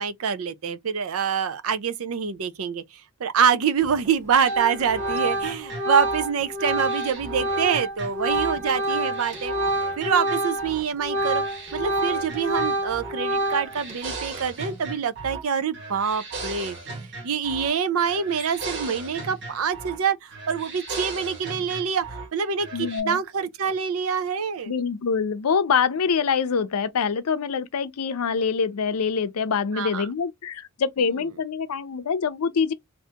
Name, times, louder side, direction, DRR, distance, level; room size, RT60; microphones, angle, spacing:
voice 1, 0.0-2.8 3.2-9.5 10.0-11.4 11.7-16.8 17.2-24.7 29.7-30.1, right 7 dB, 70° right, 0.5 m, -25 dB
Organ, 3.8-4.1 4.4-10.7 11.0-13.9, right 1 dB, 35° right, 1.0 m, -27 dB
sound 1, 4.3-8.6 8.9-10.9 11.2-13.2 13.4-15.5 15.7-17.8 18.0-20.0 20.3-22.3 22.6-23.0, right 3 dB, 50° right, 1.4 m, -37 dB
voice 2, 22.7-23.2 24.7-32.7, left 6 dB, 90° left, 0.5 m, -25 dB
2.8 x 2.6 x 3.3 m
head